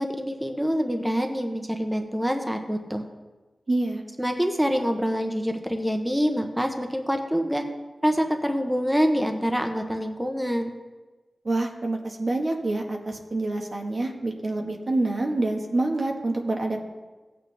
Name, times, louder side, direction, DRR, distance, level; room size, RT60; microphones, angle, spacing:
voice 1, 0.0-3.0 4.2-7.6 8.0-10.7, equal, 5° right, 4 dB, 0.9 m, -26 dB
voice 2, 3.7-4.0 11.4-16.8, right 2 dB, 60° right, 2 dB, 1.5 m, -27 dB
15.5 x 8.5 x 3.4 m, 1.3 s
wide cardioid pair, 65°, 0 cm